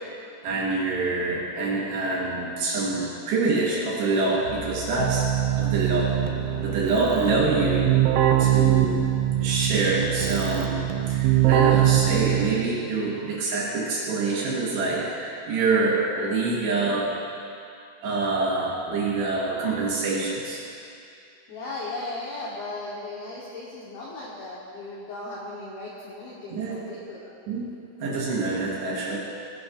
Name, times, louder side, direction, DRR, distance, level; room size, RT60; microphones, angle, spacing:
voice 1, 0.4-6.2 6.6-7.9 8.4-9.1 9.4-17.1 18.0-20.6 26.5-26.9 27.5-27.7 28.0-29.2, right 3 dB, 70° right, -4 dB, 3.0 m, -26 dB
Keyboard (musical), 4.5-12.8, right 12 dB, 90° right, 3.4 m, -23 dB
voice 2, 21.5-27.3, left 2 dB, 70° left, -6 dB, 2.3 m, -36 dB
17.5 x 15.5 x 2.5 m, 2.5 s
omnidirectional pair, 6.0 m